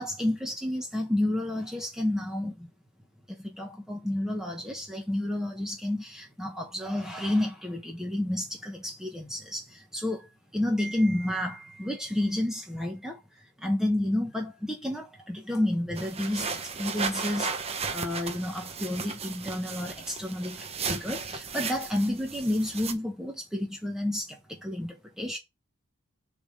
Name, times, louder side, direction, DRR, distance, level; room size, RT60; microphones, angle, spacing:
voice 1, 0.0-2.7 3.3-13.2 13.6-25.4, left 1 dB, ahead, 1.1 m, -30 dB
sound 1, 16.0-22.9, right 5 dB, 30° right, 0.8 m, -35 dB
6.9 x 3.6 x 4.9 m
head